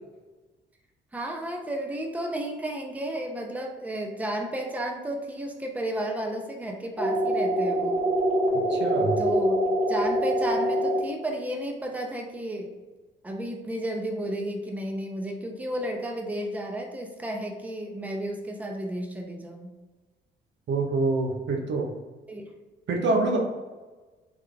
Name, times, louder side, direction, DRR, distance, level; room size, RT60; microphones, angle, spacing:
voice 1, 1.1-8.0 9.2-9.6 9.9-12.7 13.2-19.7 22.3-22.4, right 1 dB, 5° right, 1 dB, 0.7 m, -32 dB
sound 1, 7.0-11.0, equal, 35° left, 0.9 m, -24 dB
voice 2, 8.7-9.2 20.7-21.9 22.9-23.4, right 3 dB, 65° right, 2 dB, 0.9 m, -25 dB
3.7 x 3.3 x 3.3 m, 1.2 s
cardioid pair, 90°, 20 cm